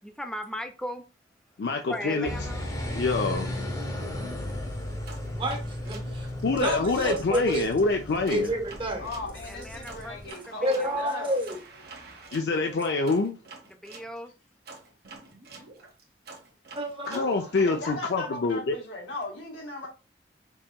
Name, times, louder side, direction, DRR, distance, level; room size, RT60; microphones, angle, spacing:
voice 1, 0.0-1.0 1.9-2.6 9.5-11.0 13.7-14.3, equal, 5° left, 0.5 m, -37 dB
voice 2, 1.6-2.3 2.9-3.6 6.4-8.5 12.3-13.4 17.1-18.8, left 3 dB, 65° left, 0.5 m, -26 dB
sound 1, 2.2-10.3, left 1 dB, 20° left, 0.9 m, -35 dB
sound 2, 5.0-7.7 8.2-14.1 14.6-17.8, right 3 dB, 60° right, 1.1 m, -48 dB
voice 3, 5.4-7.7 8.3-9.1 10.6-11.6 16.7-17.3, equal, 30° right, 1.0 m, -29 dB
voice 4, 9.0-11.4 17.4-19.9, left 2 dB, 85° left, 1.8 m, -38 dB
5.4 x 2.9 x 2.3 m
head